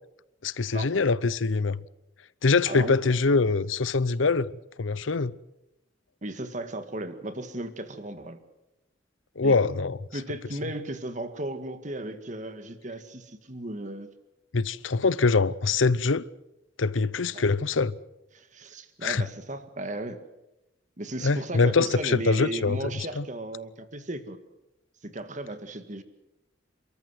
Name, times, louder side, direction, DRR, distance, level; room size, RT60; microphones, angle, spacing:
voice 1, 0.4-1.8 2.4-4.5 4.8-5.3 9.4-10.0 14.5-16.2 16.8-18.0 19.0-19.2 21.2-22.8 23.2-23.3, left 4 dB, 90° left, 0.7 m, -24 dB
voice 2, 2.7-3.0 6.2-8.4 9.4-9.6 10.1-14.1 17.3-17.5 18.3-20.2 21.0-24.4 25.0-26.0, right 1 dB, 40° right, 1.8 m, -35 dB
29.5 x 13.5 x 8.1 m
head